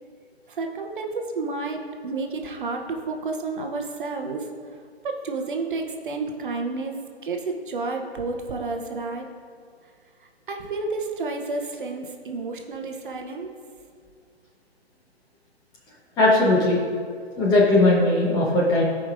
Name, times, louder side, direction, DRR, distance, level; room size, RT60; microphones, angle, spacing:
voice 1, 0.5-4.8 5.0-6.9 7.2-9.3 10.5-13.5, right 3 dB, 50° right, 3 dB, 0.9 m, -30 dB
voice 2, 16.2-16.8 17.4-18.8, left 2 dB, 10° left, -4 dB, 1.0 m, -18 dB
15.5 x 5.2 x 2.6 m, 2.1 s
figure-of-eight pair, 140°, 33 cm